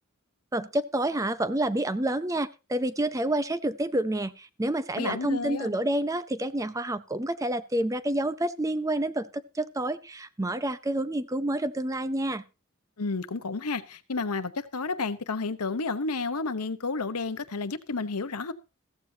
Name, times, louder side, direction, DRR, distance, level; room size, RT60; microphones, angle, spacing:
voice 1, 0.5-12.4, right 1 dB, 15° right, 0.6 m, -28 dB
voice 2, 5.0-5.7 13.0-18.5, left 3 dB, 90° left, 1.0 m, -31 dB
15.0 x 14.5 x 2.8 m
head